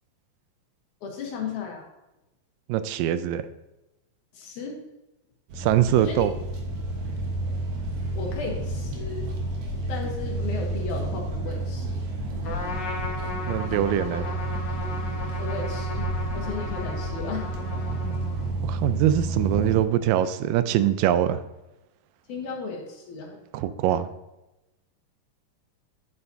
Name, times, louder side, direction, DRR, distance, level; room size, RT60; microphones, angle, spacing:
voice 1, 1.0-1.9 4.3-4.8 6.0-6.3 8.1-9.3 9.9-12.0 15.1-17.5 22.3-23.4, left 4 dB, 70° left, 1 dB, 2.4 m, -35 dB
voice 2, 2.7-3.4 5.6-6.3 13.5-14.3 18.6-21.4 23.5-24.1, right 11 dB, 90° right, 12 dB, 2.2 m, -23 dB
sound 1, 5.5-19.8, right 2 dB, 55° right, 2.0 m, -30 dB
Trumpet, 12.4-18.6, left 3 dB, 90° left, 0.9 m, -37 dB
9.9 x 7.7 x 2.7 m, 0.97 s
omnidirectional pair, 3.8 m